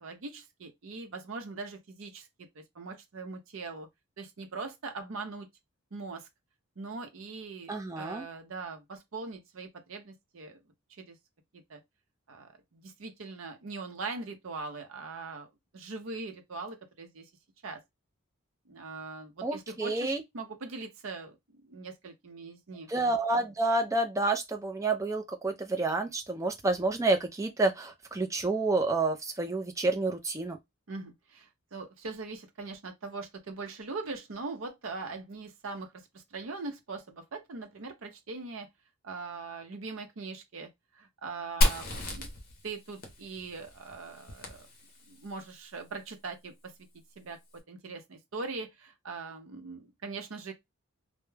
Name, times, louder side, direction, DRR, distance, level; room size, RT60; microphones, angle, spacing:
voice 1, 0.0-2.3 2.5-3.9 4.2-5.5 5.9-6.3 6.8-10.6 11.0-11.2 11.5-11.8 12.3-15.5 15.7-17.3 17.6-17.8 18.7-22.9 30.9-38.7 39.0-40.7 40.9-42.3 42.6-44.7 45.1-46.7 47.2-50.5, right 3 dB, 65° right, 0.6 m, -41 dB
voice 2, 7.7-8.2 19.4-20.2 22.9-30.6, right 2 dB, 15° right, 0.3 m, -29 dB
Fire, 41.6-45.3, left 1 dB, 40° left, 0.6 m, -32 dB
2.2 x 2.0 x 3.1 m
head